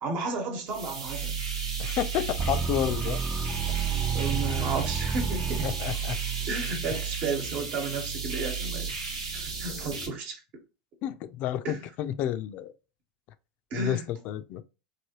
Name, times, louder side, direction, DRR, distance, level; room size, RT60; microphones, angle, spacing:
voice 1, 0.0-1.4 2.7-2.8 4.1-5.7 6.5-8.9 9.3-10.4 11.6-11.8 13.7-14.0, right 4 dB, 50° right, 1.2 m, -33 dB
sound 1, 0.7-10.1, right 6 dB, 80° right, 1.1 m, -33 dB
voice 2, 1.8-3.2 5.6-6.2 6.9-7.0 9.7-10.1 11.0-12.7 13.7-14.6, left 11 dB, 50° left, 0.4 m, -31 dB
sound 2, 2.4-6.2, right 5 dB, 20° right, 0.4 m, -31 dB
3.3 x 2.6 x 2.9 m
hypercardioid pair, 90°, 3 cm